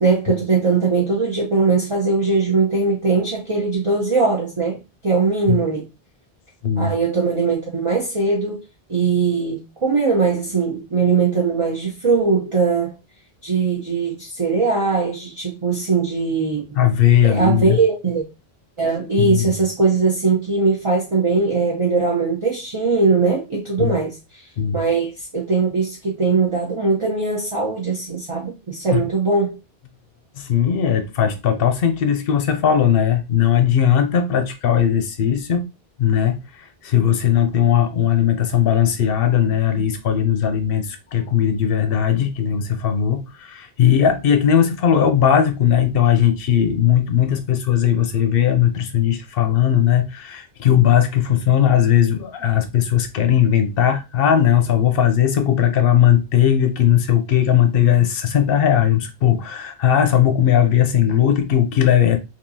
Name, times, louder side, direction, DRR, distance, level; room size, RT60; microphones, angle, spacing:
voice 1, 0.0-4.8 5.0-5.9 6.8-8.6 8.9-12.9 13.4-16.6 17.2-18.3 18.8-24.5 24.7-29.6, right 4 dB, 35° right, 0.7 m, -20 dB
voice 2, 6.6-6.9 16.8-17.8 19.2-19.5 23.8-24.0 24.6-24.8 28.9-29.0 30.4-35.7 36.0-62.2, left 9 dB, 65° left, 0.8 m, -18 dB
3.6 x 2.7 x 2.6 m
omnidirectional pair, 1.1 m